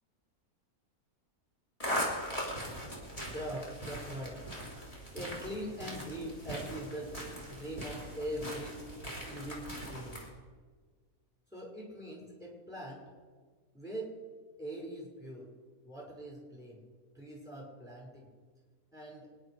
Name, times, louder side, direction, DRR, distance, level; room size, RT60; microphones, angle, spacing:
sound 1, 1.8-10.3, equal, 25° left, 3.5 m, -40 dB
voice 1, 3.3-4.5 5.1-7.2 7.5-8.9 9.3-10.2 11.5-13.1 13.7-14.2 14.6-15.5 15.8-16.8 17.1-18.3 18.9-19.3, right 1 dB, ahead, -3 dB, 5.6 m, -42 dB
27.0 x 10.0 x 4.9 m, 1.5 s
omnidirectional pair, 1.6 m